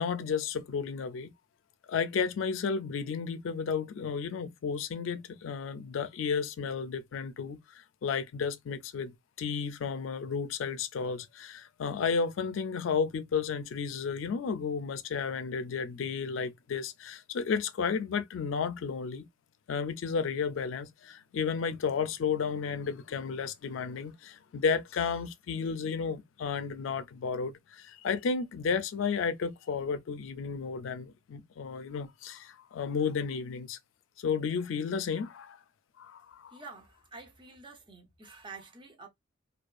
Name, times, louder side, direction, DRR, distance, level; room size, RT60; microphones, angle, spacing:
voice 1, 0.0-1.3 1.9-19.3 19.7-33.8 34.2-35.6 36.0-36.5, left 6 dB, 85° left, 0.4 m, -33 dB
voice 2, 36.5-39.1, right 4 dB, 25° right, 0.6 m, -48 dB
2.5 x 2.2 x 2.3 m
head